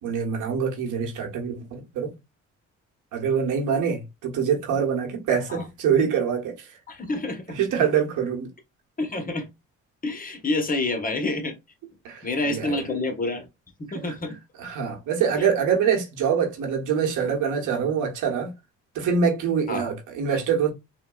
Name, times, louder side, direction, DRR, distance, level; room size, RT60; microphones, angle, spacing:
voice 1, 0.0-2.1 3.1-6.8 7.5-8.5 12.0-12.8 13.9-14.1 14.6-18.5 18.9-20.7, right 7 dB, 80° right, 1.1 m, -25 dB
voice 2, 6.9-7.6 9.0-9.5 10.0-11.5 12.2-13.5 13.8-14.4 15.4-15.5 19.7-19.9, left 2 dB, 30° left, 0.9 m, -28 dB
3.7 x 2.2 x 2.3 m
cardioid pair, 90°, 30 cm